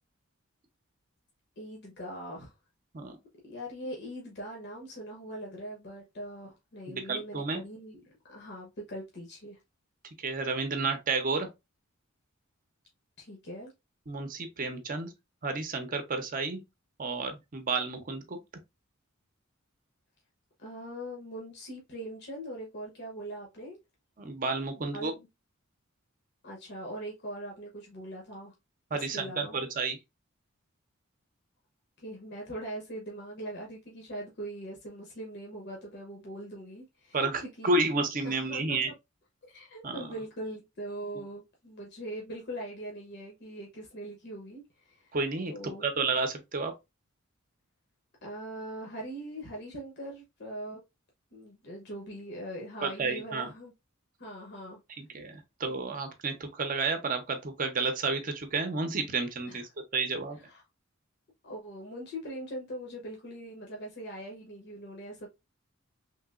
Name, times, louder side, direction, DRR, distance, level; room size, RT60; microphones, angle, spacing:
voice 1, 1.6-2.5 3.4-8.0 8.3-9.6 13.2-13.7 20.6-23.8 24.9-25.3 26.4-28.5 28.9-29.6 32.0-37.3 37.6-38.8 39.5-45.1 45.5-45.8 48.2-50.8 51.3-53.7 54.2-54.8 59.4-59.6 60.5-60.6 61.4-65.3, right 1 dB, 55° left, 0.8 m, -41 dB
voice 2, 6.9-7.6 10.2-11.5 14.1-15.1 15.4-16.6 17.0-18.4 24.2-25.1 28.9-30.0 37.1-38.9 39.8-40.1 45.1-46.7 52.8-53.5 55.0-60.4, right 3 dB, 40° right, 0.6 m, -31 dB
3.2 x 2.9 x 2.3 m
head